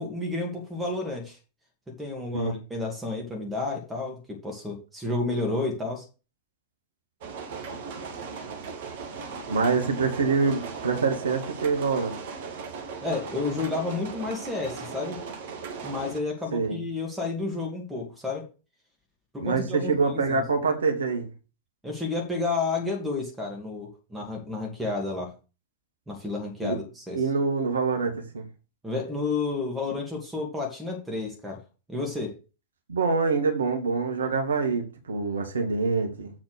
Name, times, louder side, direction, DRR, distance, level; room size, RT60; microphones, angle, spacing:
voice 1, 0.0-1.4 2.0-6.1 13.0-15.3 15.8-18.5 19.3-20.4 21.8-25.3 26.1-27.2 28.8-31.6 31.9-32.4, left 3 dB, 10° right, 2.4 m, -31 dB
sound 1, 7.2-16.2, right 5 dB, 55° right, 1.3 m, -38 dB
voice 2, 9.5-12.2 16.5-16.8 19.4-21.3 26.6-26.8 27.1-28.4 32.9-36.3, right 4 dB, 70° right, 1.4 m, -25 dB
7.4 x 4.3 x 6.4 m
figure-of-eight pair, 90°, 0 cm